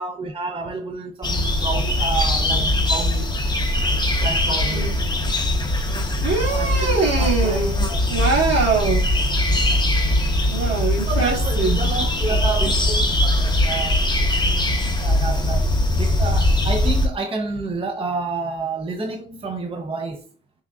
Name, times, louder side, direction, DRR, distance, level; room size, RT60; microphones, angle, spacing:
voice 1, 0.0-3.3 4.2-4.9 6.5-8.0 9.7-9.8 11.1-14.1 15.0-20.2, right 3 dB, 20° right, 0.6 m, -29 dB
sound 1, 1.2-17.1, left 1 dB, 15° left, 0.7 m, -21 dB
voice 2, 6.2-7.8 8.1-9.1 10.5-11.8, right 4 dB, 55° right, 1.9 m, -22 dB
6.1 x 2.4 x 2.3 m
cardioid pair, 90°, 30 cm